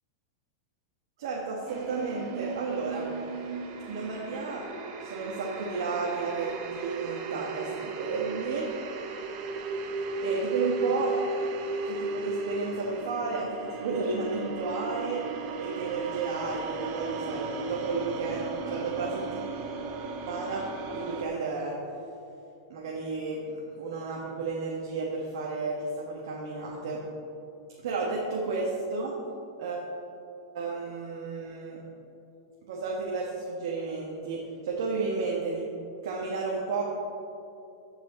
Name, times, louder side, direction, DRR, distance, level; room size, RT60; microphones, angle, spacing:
voice 1, 1.2-3.1 3.9-4.7 5.0-8.7 10.2-11.1 11.8-15.2 15.6-19.5 20.3-20.6 20.9-21.7 22.7-27.0 27.8-29.1 29.6-29.9 30.5-31.8 32.7-35.6 36.0-36.8, right 4 dB, 75° right, -3 dB, 1.3 m, -32 dB
sound 1, 1.7-21.3, right 3 dB, 40° right, 0.7 m, -35 dB
14.0 x 4.9 x 4.0 m, 2.8 s
supercardioid pair, 155°, 2 cm